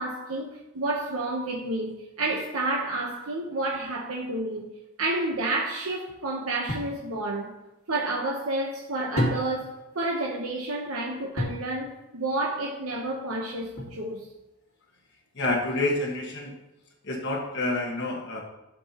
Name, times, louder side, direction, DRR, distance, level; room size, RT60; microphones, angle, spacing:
voice 1, 0.0-7.6 7.9-14.3, right 2 dB, 80° right, 1.0 m, -30 dB
sound 1, 6.7-7.0 9.2-9.8 11.4-11.7 13.8-14.3, left 1 dB, 70° left, 1.9 m, -30 dB
voice 2, 15.3-16.6 17.0-18.4, left 2 dB, 55° left, 1.5 m, -28 dB
12.0 x 7.0 x 3.0 m
head